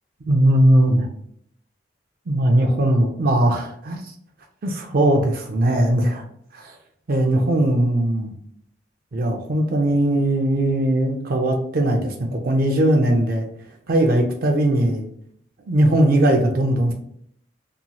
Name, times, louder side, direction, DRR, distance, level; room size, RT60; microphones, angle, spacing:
voice 1, 0.2-1.1 2.3-4.1 4.6-6.2 6.5-6.8 7.1-8.3 9.1-13.5 13.9-15.1 15.7-16.9, right 1 dB, 50° right, 3 dB, 0.4 m, -19 dB
2.9 x 2.7 x 2.2 m, 0.66 s
head